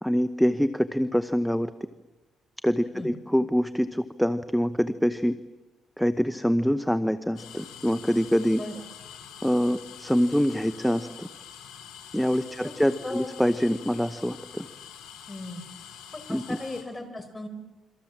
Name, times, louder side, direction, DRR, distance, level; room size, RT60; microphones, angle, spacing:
voice 1, 0.0-1.7 2.6-5.4 6.0-8.6 9.4-11.3 12.1-14.7 16.3-16.6, equal, ahead, 11 dB, 0.9 m, -25 dB
sound 1, 7.4-16.8, left 9 dB, 90° left, 5.8 m, -46 dB
voice 2, 15.3-15.6 16.1-17.5, left 2 dB, 20° left, 8 dB, 4.9 m, -37 dB
28.5 x 24.0 x 7.4 m, 1.1 s
cardioid pair, 90°, 0 cm